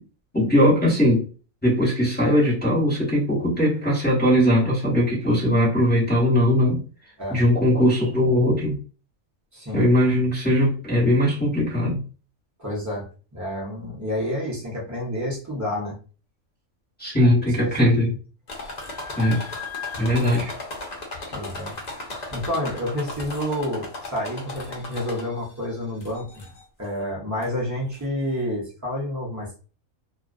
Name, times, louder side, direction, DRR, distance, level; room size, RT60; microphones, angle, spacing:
voice 1, 0.3-1.2 1.6-6.8 7.3-8.8 9.7-12.0 17.0-18.1 19.2-19.4 20.0-20.5, equal, 10° left, 0.9 m, -20 dB
voice 2, 9.5-9.9 12.6-13.1 13.3-16.0 17.6-18.1 21.3-21.7 22.0-26.4 26.8-29.6, left 1 dB, 20° right, 0.5 m, -29 dB
sound 1, 18.5-25.5 26.0-26.6 27.4-27.5 27.9-28.0, left 3 dB, 55° left, 0.5 m, -36 dB
2.3 x 2.3 x 2.4 m
omnidirectional pair, 1.5 m